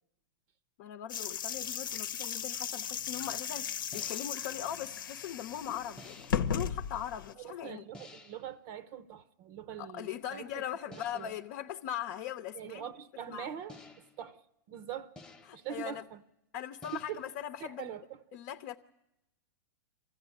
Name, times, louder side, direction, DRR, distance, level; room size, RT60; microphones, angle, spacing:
voice 1, 0.8-7.9 9.8-12.9 13.3-13.5 15.5-16.0 16.5-17.9 18.3-18.8, left 10 dB, 55° left, 0.8 m, -40 dB
sound 1, 1.1-7.3, left 8 dB, 85° left, 1.0 m, -36 dB
sound 2, 3.9-4.5 6.0-6.5 7.9-8.5 10.9-11.5 13.7-14.3 15.2-15.7 16.8-17.4, left 1 dB, 5° left, 1.0 m, -52 dB
voice 2, 7.4-10.6 10.9-11.4 12.5-13.8 14.2-14.4 14.7-15.1 15.5-16.2 16.9-17.2 17.6-18.2, right 9 dB, 45° right, 0.7 m, -43 dB
24.5 x 15.0 x 9.7 m
hypercardioid pair, 140°, 11 cm